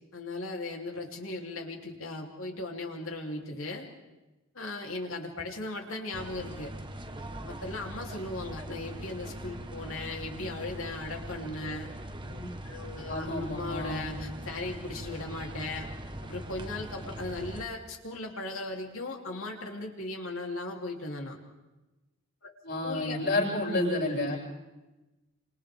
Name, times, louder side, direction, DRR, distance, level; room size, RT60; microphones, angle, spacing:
voice 1, 0.1-3.9 4.5-6.7 7.4-11.9 12.6-15.9 16.2-21.4 22.4-22.5 22.8-23.2, left 2 dB, 75° left, 1 dB, 3.3 m, -37 dB
sound 1, 6.1-17.6, right 1 dB, 20° right, 1.3 m, -41 dB
voice 2, 13.1-14.1 22.6-24.4, left 2 dB, 50° left, -4 dB, 7.5 m, -30 dB
29.5 x 27.0 x 3.6 m, 1.1 s
head